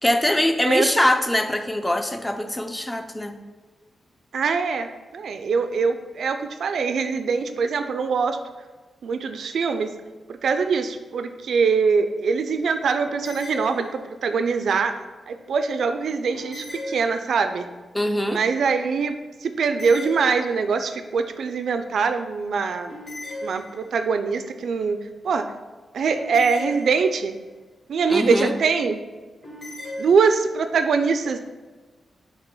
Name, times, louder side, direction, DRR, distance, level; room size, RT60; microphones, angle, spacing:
voice 1, 0.0-3.4 17.9-18.4 28.1-28.5, left 1 dB, 10° left, 7 dB, 0.5 m, -22 dB
voice 2, 4.3-8.4 9.0-9.9 10.4-14.9 15.3-17.7 18.3-23.0 23.4-25.5 25.9-27.4 27.9-29.0 30.0-31.4, right 5 dB, 70° right, 8 dB, 0.5 m, -23 dB
sound 1, 13.1-14.4 16.3-17.6 19.6-20.9 22.9-24.2 26.2-27.5 29.4-30.4, left 1 dB, 45° left, 1.8 m, -37 dB
7.3 x 2.9 x 5.3 m, 1.3 s
wide cardioid pair, 130°, 0 cm